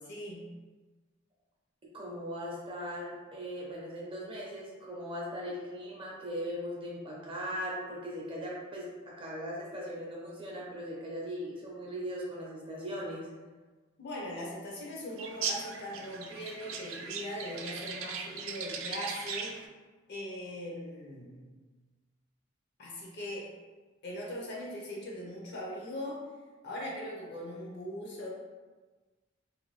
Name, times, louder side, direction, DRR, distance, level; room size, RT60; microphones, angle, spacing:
voice 1, 0.1-0.5 14.0-19.6 20.1-21.5 22.8-23.5 24.0-26.3 26.6-28.3, left 1 dB, 55° left, -4 dB, 0.7 m, -40 dB
voice 2, 1.9-13.3, equal, 25° right, -4 dB, 0.6 m, -39 dB
sound 1, 15.2-19.7, right 6 dB, 70° right, 0.3 m, -38 dB
2.6 x 2.2 x 3.1 m, 1.3 s
head